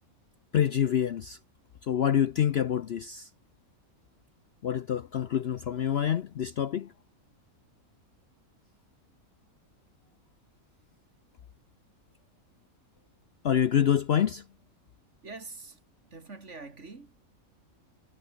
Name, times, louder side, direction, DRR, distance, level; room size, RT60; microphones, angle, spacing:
voice 1, 0.5-1.4 1.9-3.3 4.6-6.9 13.4-14.4, left 9 dB, 55° left, 0.8 m, -26 dB
voice 2, 15.2-17.3, right 3 dB, 50° right, 3.1 m, -45 dB
omnidirectional pair, 1.5 m